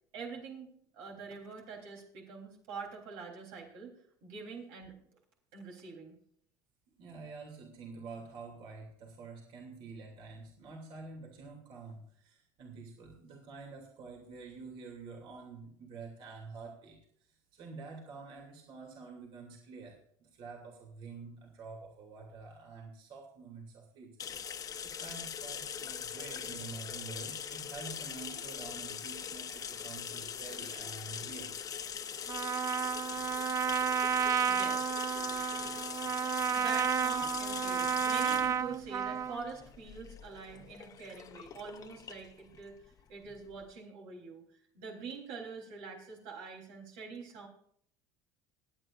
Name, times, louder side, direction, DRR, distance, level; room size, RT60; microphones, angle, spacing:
voice 1, 0.1-0.7 0.9-3.9 4.2-4.9 5.5-6.1 34.5-34.9 36.1-44.4 44.7-47.5, right 5 dB, 80° right, -1 dB, 3.5 m, -45 dB
voice 2, 7.0-24.2 24.8-31.5 42.5-42.6, right 4 dB, 60° right, 0 dB, 2.7 m, -48 dB
sound 1, 24.2-43.6, left 8 dB, 35° left, 1.0 m, -42 dB
Trumpet, 32.3-39.4, right 7 dB, 30° right, 0.4 m, -31 dB
26.0 x 8.9 x 2.5 m, 0.63 s
supercardioid pair, 110°, 10 cm